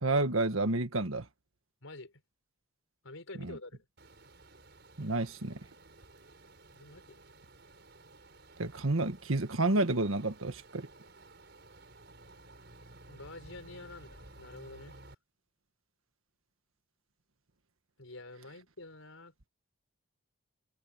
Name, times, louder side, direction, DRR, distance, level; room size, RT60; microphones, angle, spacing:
voice 1, 0.0-1.3 3.4-3.5 5.0-5.6 8.6-10.9, right 2 dB, 90° right, 1.6 m, -30 dB
voice 2, 1.8-2.2 3.0-3.9 6.7-7.2 13.1-15.0 18.0-19.5, left 2 dB, 85° left, 4.7 m, -48 dB
sound 1, 4.0-15.1, right 2 dB, 55° right, 6.1 m, -55 dB
head